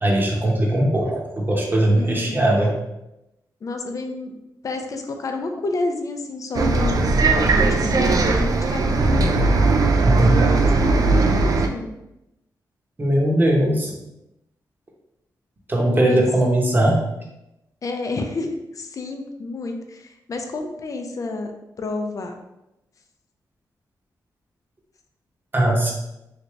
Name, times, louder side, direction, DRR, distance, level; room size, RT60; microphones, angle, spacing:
voice 1, 0.0-2.7 10.0-10.4 13.0-13.9 15.7-17.1 25.5-25.9, right 1 dB, 25° right, -1 dB, 0.9 m, -19 dB
voice 2, 1.9-2.4 3.6-4.4 4.6-9.2 10.1-11.9 15.9-16.3 17.8-21.5 21.8-22.3, left 3 dB, 50° left, 4 dB, 0.4 m, -30 dB
Bus, 6.5-11.7, right 3 dB, 55° right, 0.4 m, -18 dB
3.2 x 2.7 x 3.1 m, 0.91 s
cardioid pair, 80°, 7 cm